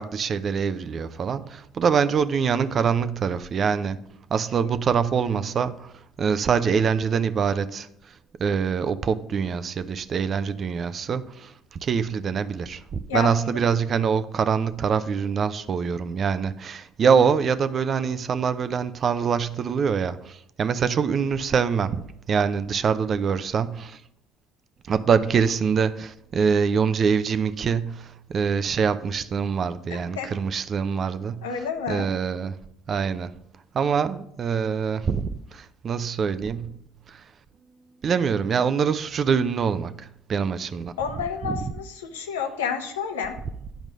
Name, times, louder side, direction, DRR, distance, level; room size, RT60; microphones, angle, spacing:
voice 1, 0.0-24.0 24.9-32.6 32.9-33.4 33.7-36.8 37.1-37.3 38.0-40.9 41.4-41.7, right 6 dB, 45° right, 0.6 m, -25 dB
voice 2, 29.9-30.3 31.4-32.1 41.0-43.4, left 6 dB, 85° left, 1.0 m, -30 dB
9.2 x 5.2 x 6.2 m
hypercardioid pair, 65°, 0 cm